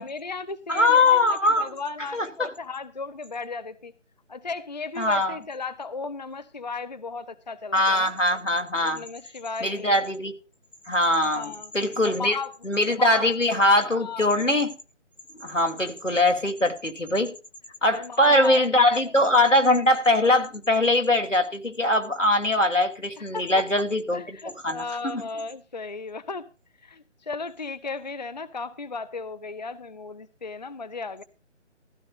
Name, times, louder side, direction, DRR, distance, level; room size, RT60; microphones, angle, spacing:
voice 1, 0.0-3.9 4.3-8.1 8.8-10.0 11.3-11.7 12.0-12.5 13.0-13.3 14.0-14.3 17.9-19.4 23.2-23.7 24.1-26.5 26.8-31.2, left 4 dB, 35° left, 0.6 m, -36 dB
voice 2, 0.7-1.7 2.1-2.5 5.0-5.4 7.7-9.0 9.6-10.3 10.9-12.4 12.6-14.8 15.4-17.3 17.8-24.4 24.6-24.8 25.1-25.2, left 1 dB, 90° left, 2.8 m, -22 dB
15.5 x 15.0 x 2.4 m
figure-of-eight pair, 155°, 36 cm